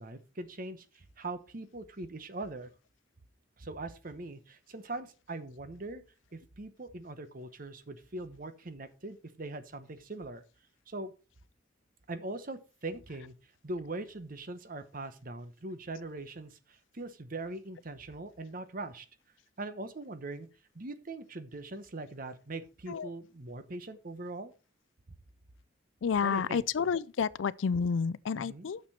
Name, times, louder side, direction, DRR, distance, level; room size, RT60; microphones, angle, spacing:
voice 1, 0.0-2.7 3.6-6.0 6.3-10.4 10.9-11.1 12.1-13.3 13.6-19.1 19.6-20.5 20.7-24.5 26.2-26.6 28.3-28.7, right 2 dB, 50° right, 1.0 m, -41 dB
voice 2, 26.0-28.8, left 6 dB, 85° left, 0.4 m, -30 dB
9.4 x 6.8 x 4.2 m
head